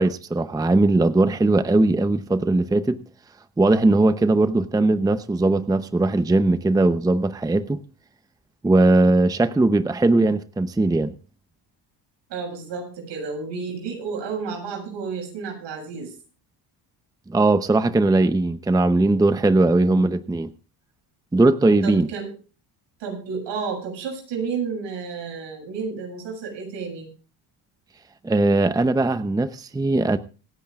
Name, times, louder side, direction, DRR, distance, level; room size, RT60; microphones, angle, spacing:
voice 1, 0.0-3.0 3.6-7.8 8.6-11.1 17.3-20.5 21.3-22.1 28.2-30.2, right 2 dB, 10° right, 0.7 m, -19 dB
voice 2, 12.3-16.1 19.7-20.1 21.8-22.3 23.0-27.1, right 5 dB, 70° right, 7.2 m, -31 dB
26.0 x 9.8 x 2.4 m
cardioid pair, 110°, 44 cm